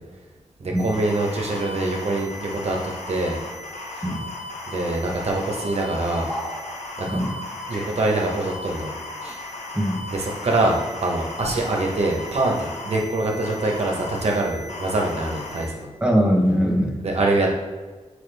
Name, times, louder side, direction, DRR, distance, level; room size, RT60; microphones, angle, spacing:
voice 1, 0.6-2.8 3.1-3.4 4.7-6.3 7.0-7.2 7.7-8.9 9.2-9.4 10.1-15.9 17.0-17.6, right 2 dB, 60° right, 0 dB, 1.2 m, -24 dB
sound 1, 0.8-15.7, left 2 dB, 80° left, 1.1 m, -36 dB
sound 2, 3.7-4.6 4.9-5.0 5.3-5.8 6.2-8.0, equal, 10° left, 1.6 m, -39 dB
voice 2, 9.7-10.1 16.0-17.0, equal, 10° right, 0 dB, 1.0 m, -21 dB
6.4 x 4.9 x 3.4 m, 1.3 s
wide cardioid pair, 125°, 12 cm